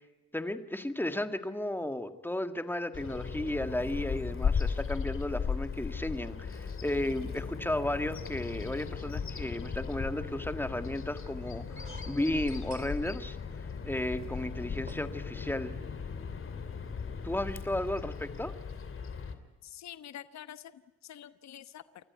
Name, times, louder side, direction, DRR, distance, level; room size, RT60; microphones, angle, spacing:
voice 1, 0.3-13.4 13.8-15.7 17.2-18.5, left 1 dB, 5° left, 9 dB, 1.7 m, -34 dB
Bird vocalization bird call bird song, 2.9-19.3, left 6 dB, 45° left, 2.8 m, -37 dB
sound 1, 11.8-13.9 14.3-14.4 14.9-15.1 15.5-15.6 15.9-16.0, right 3 dB, 30° right, 3.6 m, -51 dB
voice 2, 19.6-22.0, left 10 dB, 65° left, 13 dB, 1.1 m, -47 dB
29.5 x 14.0 x 9.5 m, 1.2 s
cardioid pair, 90°, 30 cm